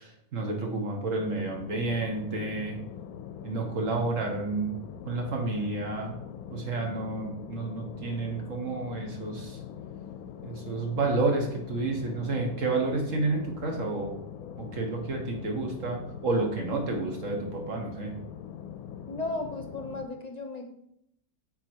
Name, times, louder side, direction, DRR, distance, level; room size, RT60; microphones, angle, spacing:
voice 1, 0.0-2.8 3.4-4.8 5.0-6.1 6.5-9.6 10.4-14.2 14.6-18.1, right 3 dB, 60° right, 2 dB, 1.4 m, -30 dB
sound 1, 1.2-20.1, left 9 dB, 85° left, 1.1 m, -42 dB
voice 2, 19.1-20.7, left 2 dB, 35° left, 4 dB, 0.8 m, -35 dB
8.7 x 4.0 x 4.5 m, 0.75 s
omnidirectional pair, 1.5 m